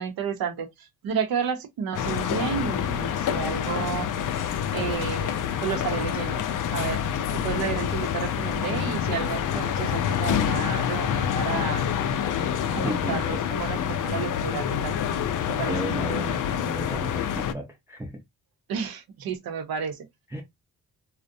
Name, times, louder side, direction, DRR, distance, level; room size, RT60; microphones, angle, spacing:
voice 1, 0.0-4.1 4.7-6.4 6.7-7.0 7.3-11.9 12.7-15.0 15.5-15.8 18.7-20.1, right 7 dB, 75° right, 0.7 m, -31 dB
sound 1, 1.9-17.5, left 9 dB, 60° left, 0.5 m, -27 dB
voice 2, 12.8-13.4 15.6-18.2 20.3-20.4, right 1 dB, 10° right, 0.5 m, -34 dB
2.5 x 2.1 x 2.6 m
cardioid pair, 75°, 36 cm